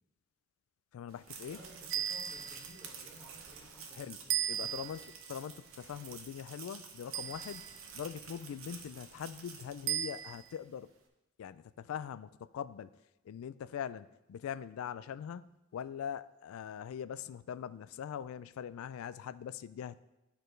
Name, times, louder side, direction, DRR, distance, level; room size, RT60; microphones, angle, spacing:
voice 1, 0.9-1.6 3.9-4.2 4.5-7.7 7.9-10.9 11.4-12.9 13.2-20.0, left 8 dB, 85° left, 16 dB, 0.3 m, -42 dB
sound 1, 1.1-10.6, right 6 dB, 85° right, 0.9 m, -50 dB
voice 2, 1.4-5.0, equal, 5° left, -6 dB, 1.4 m, -57 dB
sound 2, 1.9-2.8 4.3-5.1 7.1-7.8 9.9-10.5, right 11 dB, 65° right, 0.3 m, -36 dB
12.0 x 4.5 x 3.2 m, 0.97 s
head